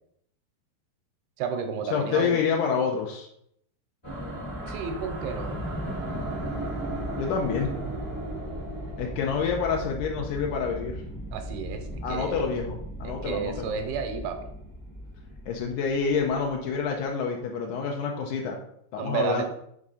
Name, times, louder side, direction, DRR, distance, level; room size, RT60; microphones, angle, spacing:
voice 1, 1.4-2.4 4.7-5.5 11.3-12.4 13.0-14.5 19.0-19.4, right 6 dB, 85° right, 6 dB, 2.8 m, -32 dB
voice 2, 1.9-3.3 7.2-7.7 9.0-11.0 12.0-13.7 15.5-18.6 18.9-19.4, left 6 dB, 85° left, 0 dB, 1.7 m, -28 dB
sound 1, 4.0-16.6, right 1 dB, 45° left, 0.3 m, -36 dB
6.4 x 3.6 x 5.5 m, 0.71 s
omnidirectional pair, 4.5 m